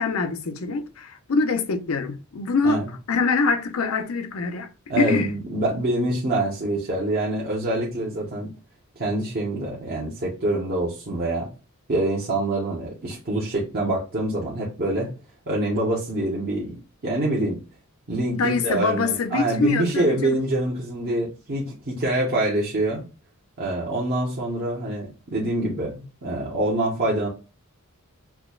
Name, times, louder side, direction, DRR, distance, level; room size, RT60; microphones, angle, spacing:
voice 1, 0.0-2.8 3.1-4.7 5.0-5.3 18.3-20.4, left 4 dB, 75° left, 0.6 m, -24 dB
voice 2, 4.9-8.5 9.0-11.5 11.9-15.1 15.5-16.8 17.0-17.6 18.1-23.0 23.6-27.3, right 1 dB, 45° right, 0.9 m, -25 dB
5.8 x 2.2 x 2.3 m
head